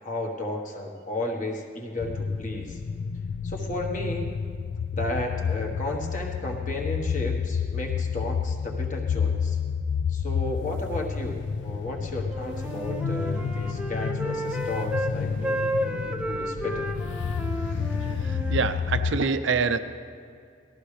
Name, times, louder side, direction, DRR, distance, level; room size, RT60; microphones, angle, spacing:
voice 1, 0.0-2.8 3.4-4.3 4.9-9.6 10.1-16.9, left 1 dB, 40° left, 0 dB, 1.4 m, -33 dB
sound 1, 2.0-19.2, left 6 dB, 60° left, 0.3 m, -30 dB
Wind instrument woodwind instrument, 12.3-15.2 15.4-18.7, right 1 dB, 5° right, 0.7 m, -32 dB
voice 2, 18.2-19.8, right 5 dB, 65° right, 10 dB, 0.6 m, -26 dB
18.5 x 14.0 x 3.3 m, 2.3 s
head